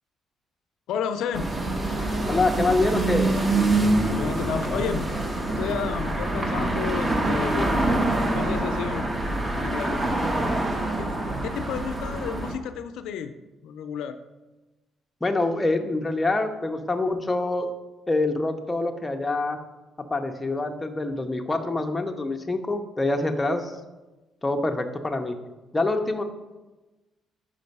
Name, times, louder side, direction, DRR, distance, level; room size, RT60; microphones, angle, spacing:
voice 1, 0.9-1.5 4.0-5.1 5.5-7.7 8.2-9.1 9.6-10.0 11.0-13.3 13.6-14.2, left 7 dB, 80° left, 10 dB, 0.4 m, -32 dB
sound 1, 1.3-12.6, right 2 dB, 20° right, 0.8 m, -25 dB
voice 2, 2.3-3.4 15.2-17.7 18.1-19.6 20.1-23.7 24.4-25.4 25.7-26.2, left 2 dB, 15° left, 4 dB, 0.5 m, -25 dB
5.3 x 5.1 x 5.3 m, 1.1 s
cardioid pair, 140°, 0 cm